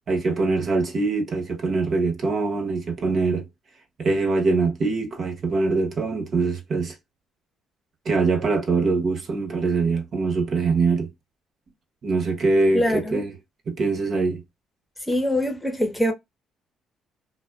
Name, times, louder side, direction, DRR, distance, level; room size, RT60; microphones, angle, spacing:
voice 1, 0.1-3.5 4.0-6.9 8.0-11.1 12.0-13.3 13.7-14.4, right 3 dB, 55° right, 0.9 m, -23 dB
voice 2, 12.7-13.2 15.1-16.1, equal, 10° left, 0.8 m, -23 dB
2.3 x 2.3 x 2.3 m
supercardioid pair, 60°, 0 cm